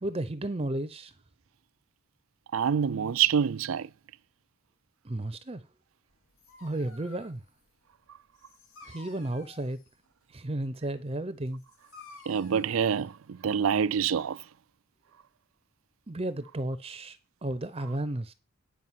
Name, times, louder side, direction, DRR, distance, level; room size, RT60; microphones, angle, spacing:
voice 1, 0.0-1.1 5.0-5.6 6.6-7.4 8.8-9.8 10.3-11.6 16.1-18.3, right 1 dB, 30° right, 0.7 m, -33 dB
voice 2, 2.5-3.9 12.3-14.4, right 7 dB, 80° right, 0.4 m, -26 dB
Dog, 6.1-13.9, left 4 dB, 90° left, 3.4 m, -54 dB
9.7 x 4.9 x 7.4 m
head